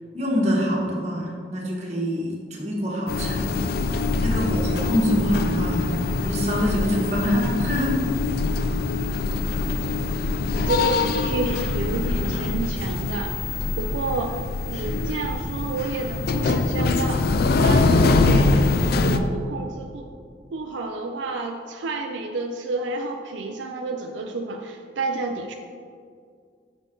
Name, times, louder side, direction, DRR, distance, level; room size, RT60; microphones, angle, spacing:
voice 1, 0.1-3.8 4.2-8.0, equal, 40° right, -4 dB, 1.4 m, -25 dB
sound 1, 3.1-19.2, left 3 dB, 55° left, 0.4 m, -23 dB
voice 2, 10.5-13.3 13.8-14.3 14.7-17.2 17.6-18.6 19.0-20.1 20.5-25.5, right 3 dB, 85° right, 3 dB, 0.4 m, -30 dB
sound 2, 10.6-16.6, equal, 5° left, 0.9 m, -38 dB
6.4 x 5.2 x 3.7 m, 2.3 s
head